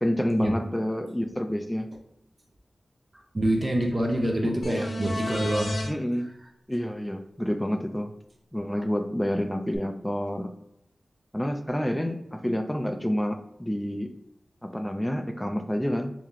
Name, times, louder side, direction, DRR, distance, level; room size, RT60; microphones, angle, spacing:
voice 1, 0.0-1.9 5.9-6.3 6.7-8.1 8.5-10.5 11.3-14.1 14.6-16.1, equal, 5° left, 5 dB, 0.3 m, -28 dB
voice 2, 3.3-5.7, right 1 dB, 35° right, 0 dB, 0.7 m, -26 dB
sound 1, 4.6-5.9 9.7-9.8, left 1 dB, 65° left, 0.7 m, -32 dB
3.4 x 2.7 x 3.5 m, 0.79 s
wide cardioid pair, 85°, 0 cm